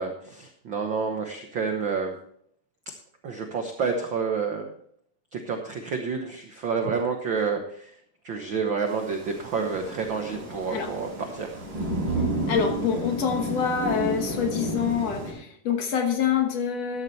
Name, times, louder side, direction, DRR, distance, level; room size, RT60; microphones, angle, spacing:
voice 1, 0.0-2.2 3.2-4.7 5.3-7.9 8.2-11.5, right 5 dB, 75° right, 4 dB, 1.1 m, -29 dB
Thunder / Rain, 8.9-15.3, right 1 dB, 35° right, 4.7 m, -31 dB
voice 2, 12.5-17.0, left 7 dB, 60° left, 4 dB, 2.0 m, -26 dB
13.5 x 11.5 x 3.2 m, 0.66 s
omnidirectional pair, 3.9 m